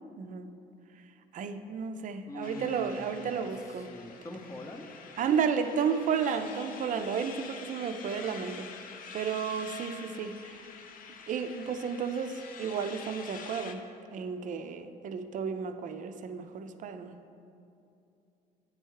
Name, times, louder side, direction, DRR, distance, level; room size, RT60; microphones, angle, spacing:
voice 1, 0.2-0.5 1.3-3.9 5.2-8.7 9.1-10.6 11.3-13.8 14.1-17.2, right 6 dB, 50° right, 9 dB, 0.5 m, -32 dB
voice 2, 2.3-3.4 3.9-4.9, left 1 dB, 20° left, 4 dB, 0.7 m, -42 dB
sound 1, 2.4-13.7, left 6 dB, 55° left, 0.6 m, -47 dB
8.8 x 4.5 x 4.7 m, 2.7 s
cardioid pair, 110°, 17 cm